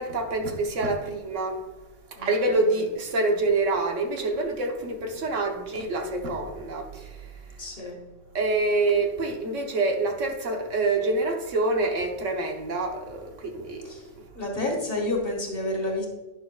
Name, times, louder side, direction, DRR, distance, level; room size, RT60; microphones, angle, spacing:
voice 1, 0.0-1.6 2.2-6.8 8.3-13.8, right 2 dB, 85° right, 1.4 m, -26 dB
voice 2, 2.1-2.8 7.6-8.0 13.8-14.1 14.4-16.1, left 2 dB, 50° left, 2.0 m, -30 dB
10.0 x 6.4 x 2.3 m
omnidirectional pair, 1.2 m